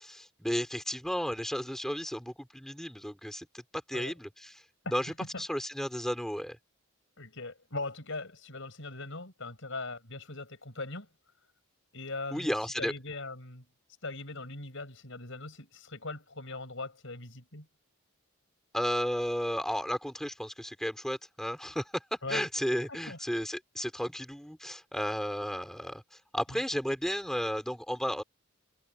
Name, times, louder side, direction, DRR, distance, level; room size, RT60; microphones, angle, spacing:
voice 1, 0.0-3.5 3.9-4.6 4.9-6.6 12.3-12.9 18.7-21.8 22.3-26.0 26.3-28.2, equal, ahead, 4.4 m, -33 dB
voice 2, 5.0-5.4 7.2-11.1 11.9-13.6 14.0-17.7 22.2-22.5 22.9-23.2 26.5-26.6, left 3 dB, 60° left, 7.1 m, -40 dB
head